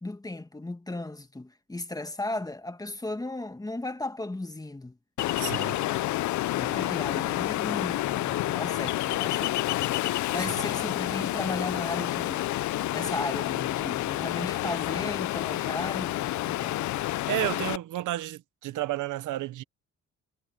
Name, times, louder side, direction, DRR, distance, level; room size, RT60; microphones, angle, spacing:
voice 1, 0.0-5.0 6.5-9.6 10.3-12.5 12.9-16.8, left 2 dB, 10° left, 1.5 m, -35 dB
Ocean, 5.2-17.8, left 16 dB, 70° left, 0.5 m, -29 dB
voice 2, 5.4-5.8 17.3-19.6, right 15 dB, 80° right, 1.0 m, -31 dB
cardioid pair, 90°, 30 cm